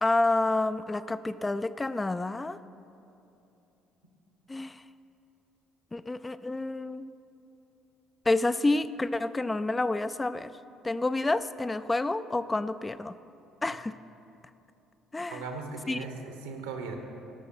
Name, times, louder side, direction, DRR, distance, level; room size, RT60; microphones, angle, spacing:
voice 1, 0.0-2.6 4.5-4.8 5.9-7.1 8.3-10.5 10.8-13.1 13.6-13.9 15.1-15.4 15.9-16.0, left 2 dB, 20° left, 12 dB, 0.3 m, -29 dB
voice 2, 15.3-17.0, right 4 dB, 75° right, 4 dB, 1.2 m, -38 dB
17.5 x 6.4 x 5.7 m, 2.9 s
figure-of-eight pair, 50°, 0 cm